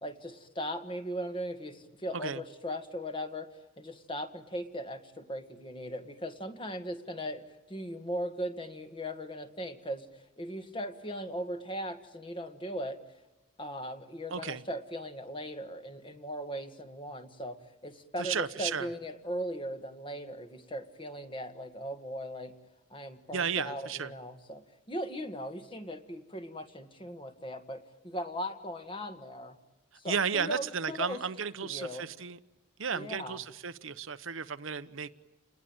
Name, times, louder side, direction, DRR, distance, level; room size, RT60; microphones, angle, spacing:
voice 1, 0.0-3.5 3.8-7.4 7.7-13.0 13.6-22.5 22.9-29.6 30.0-31.2 31.6-32.0 32.9-33.4, equal, 25° left, 7 dB, 1.9 m, -38 dB
voice 2, 14.3-14.6 18.2-18.9 23.3-24.1 30.0-32.4 32.8-35.1, right 6 dB, 70° right, 11 dB, 1.0 m, -34 dB
29.0 x 20.0 x 9.1 m, 1.1 s
head